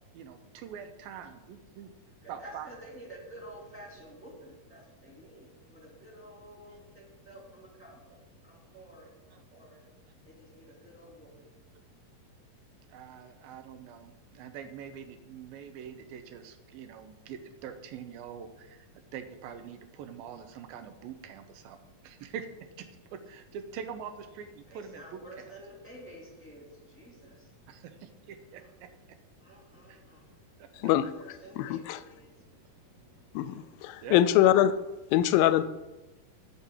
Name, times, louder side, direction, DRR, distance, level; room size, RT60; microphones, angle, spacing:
voice 1, 0.1-1.9 2.3-2.7 9.3-9.4 12.9-25.5 27.7-29.2 29.9-30.0 30.6-30.9 34.0-34.3, right 7 dB, 90° right, 9 dB, 2.7 m, -44 dB
voice 2, 2.1-12.0 24.7-27.9 28.5-28.7 29.4-33.8, right 1 dB, 5° left, -2 dB, 2.1 m, -51 dB
voice 3, 31.6-32.0 33.4-34.7 35.1-35.6, left 12 dB, 85° left, 14 dB, 2.2 m, -23 dB
10.5 x 5.7 x 8.4 m, 1.1 s
omnidirectional pair, 4.2 m